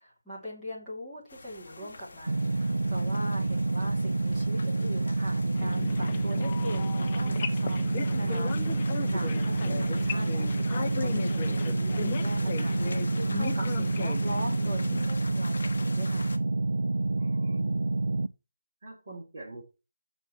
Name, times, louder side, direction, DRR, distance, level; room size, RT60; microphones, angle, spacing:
voice 1, 0.0-16.3, equal, ahead, -13 dB, 2.6 m, -42 dB
sound 1, 1.3-16.4, left 3 dB, 40° left, 1.1 m, -45 dB
sound 2, 2.3-18.3, right 2 dB, 85° right, 0.5 m, -28 dB
sound 3, 5.5-15.1, left 6 dB, 15° left, 0.4 m, -37 dB
voice 2, 17.1-17.9 18.8-19.6, right 1 dB, 25° right, -4 dB, 3.0 m, -43 dB
6.4 x 4.6 x 6.8 m, 0.29 s
figure-of-eight pair, 175°, 0 cm